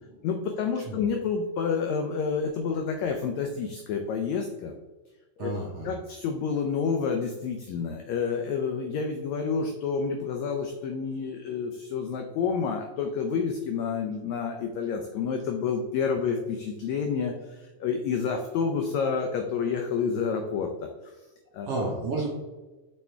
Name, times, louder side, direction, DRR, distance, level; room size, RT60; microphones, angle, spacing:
voice 1, 0.2-4.7 5.4-5.5 5.8-21.1 21.5-21.7, left 5 dB, 85° left, 4 dB, 1.6 m, -29 dB
voice 2, 5.4-5.9 21.6-22.3, right 3 dB, 65° right, -2 dB, 1.6 m, -31 dB
6.4 x 3.5 x 4.4 m, 1.2 s
omnidirectional pair, 3.8 m